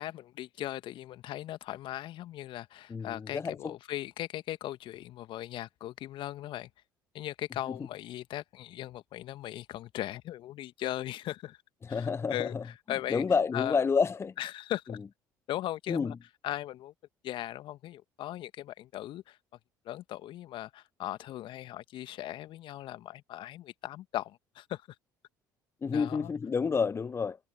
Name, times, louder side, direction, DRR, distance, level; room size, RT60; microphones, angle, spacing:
voice 1, 0.0-6.7 7.1-11.6 11.9-13.2 13.5-13.8 14.4-15.0 15.5-16.1 16.4-16.9 17.2-19.4 19.8-24.8 25.9-26.3, left 14 dB, 55° left, 1.7 m, -38 dB
voice 2, 2.9-3.7 11.8-12.6 13.1-14.3 15.9-16.1 25.8-27.4, left 5 dB, 25° left, 0.6 m, -29 dB
figure-of-eight pair, 55°, 10 cm